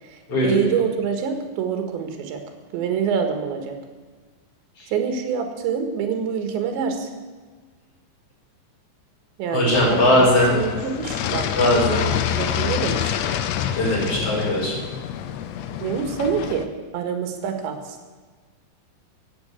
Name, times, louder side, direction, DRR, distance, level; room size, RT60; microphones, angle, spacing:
voice 1, 0.0-2.4 2.7-3.8 4.9-7.1 9.4-10.0 10.5-11.5 12.1-13.2 15.8-16.7 16.9-18.0, right 7 dB, 70° right, 6 dB, 3.8 m, -26 dB
voice 2, 9.5-10.5 11.6-12.1 13.7-14.8, left 1 dB, 30° left, -3 dB, 5.7 m, -19 dB
sound 1, 9.7-16.7, left 10 dB, 80° left, 2.5 m, -27 dB
15.5 x 9.2 x 8.2 m, 1.4 s
omnidirectional pair, 5.5 m